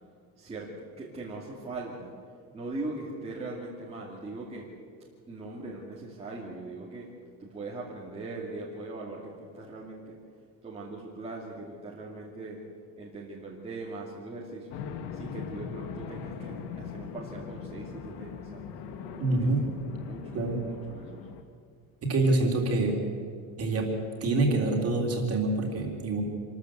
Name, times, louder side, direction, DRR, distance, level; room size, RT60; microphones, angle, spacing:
voice 1, 0.4-2.1 2.5-4.7 5.3-7.1 7.4-10.2 10.6-12.6 13.0-14.8 15.1-18.7 19.3-21.3, right 2 dB, 15° right, -5 dB, 2.4 m, -40 dB
sound 1, 14.7-21.4, left 6 dB, 70° left, 1.8 m, -40 dB
voice 2, 19.2-19.6 20.3-20.6 22.0-23.0 23.6-23.9 24.2-26.2, right 2 dB, 35° right, 1 dB, 3.5 m, -26 dB
26.5 x 13.5 x 8.0 m, 2.2 s
cardioid pair, 180°, 40 cm